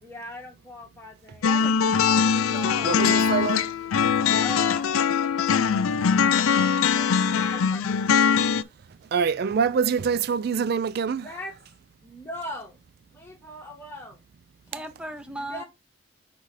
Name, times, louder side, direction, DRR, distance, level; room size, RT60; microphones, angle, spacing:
voice 1, 0.0-1.8 4.4-5.1 5.5-5.6 6.1-6.2 6.9-8.1 11.2-11.6 12.0-12.8 13.1-14.2 15.3-15.6, left 2 dB, 10° left, 1.7 m, -39 dB
sound 1, 1.4-8.6, left 6 dB, 85° left, 0.4 m, -22 dB
voice 2, 1.4-2.9 14.7-15.6, right 1 dB, 5° right, 0.8 m, -38 dB
voice 3, 2.9-3.7 9.1-11.3, right 6 dB, 50° right, 0.3 m, -25 dB
5.0 x 4.1 x 4.7 m
head